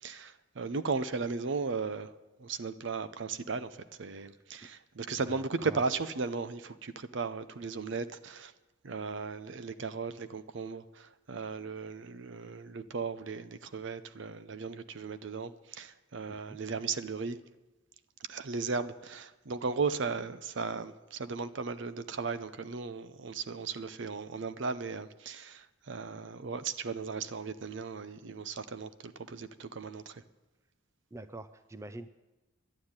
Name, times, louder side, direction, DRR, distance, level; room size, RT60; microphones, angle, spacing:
voice 1, 0.0-2.1 2.4-8.5 8.8-17.4 18.3-30.2, right 4 dB, 65° right, 0.6 m, -36 dB
voice 2, 5.2-5.8 16.3-16.6 31.1-32.1, right 1 dB, 15° right, 0.4 m, -45 dB
11.5 x 9.7 x 8.8 m
head